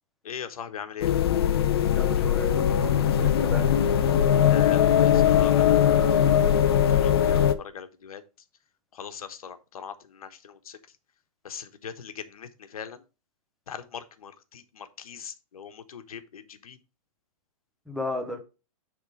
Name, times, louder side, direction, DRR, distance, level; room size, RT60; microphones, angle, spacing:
voice 1, 0.2-1.2 4.0-6.5 6.9-8.2 8.9-10.8 11.4-13.0 13.7-16.8, left 7 dB, 80° left, 9 dB, 1.3 m, -41 dB
sound 1, 1.0-7.5, left 9 dB, 45° left, 0.7 m, -21 dB
voice 2, 1.9-3.6 17.9-18.4, left 2 dB, ahead, 3 dB, 0.6 m, -35 dB
10.5 x 3.7 x 4.8 m, 0.30 s
hypercardioid pair, 175°, 18 cm